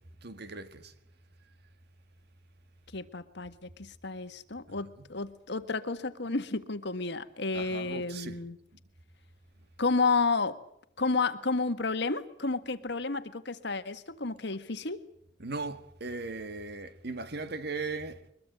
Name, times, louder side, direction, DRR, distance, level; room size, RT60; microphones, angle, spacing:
voice 1, 0.2-0.9 5.0-5.1 7.5-8.4 15.4-18.2, right 3 dB, 60° right, 1.9 m, -38 dB
voice 2, 2.9-8.6 9.8-10.6 11.0-15.0, left 3 dB, 65° left, 1.8 m, -31 dB
23.5 x 22.0 x 8.0 m
head